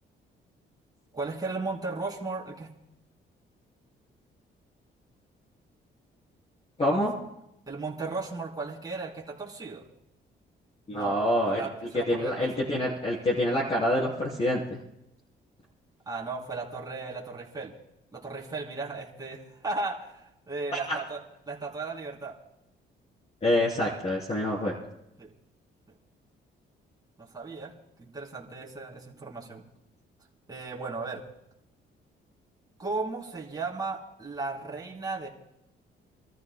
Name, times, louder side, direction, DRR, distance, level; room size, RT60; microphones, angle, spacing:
voice 1, 1.1-2.7 7.7-9.8 10.9-11.2 11.5-12.6 16.0-17.7 18.1-20.2 20.5-21.2 21.5-22.3 25.2-25.3 27.2-27.7 28.0-29.6 30.5-31.2 32.8-35.3, right 3 dB, 20° right, -4 dB, 3.3 m, -35 dB
voice 2, 6.8-7.1 10.9-11.6 12.1-14.8 20.9-21.0 23.4-24.7, left 1 dB, 30° left, -5 dB, 3.4 m, -26 dB
29.0 x 13.5 x 2.2 m, 0.82 s
cardioid pair, 90°, 20 cm